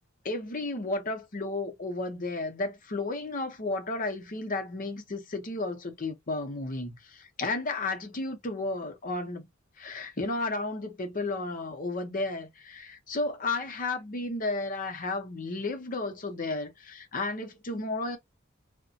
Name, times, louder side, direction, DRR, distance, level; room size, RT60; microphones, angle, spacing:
voice 1, 0.2-9.5 9.8-18.2, left 2 dB, 40° left, 0.7 m, -33 dB
2.6 x 2.1 x 2.4 m
head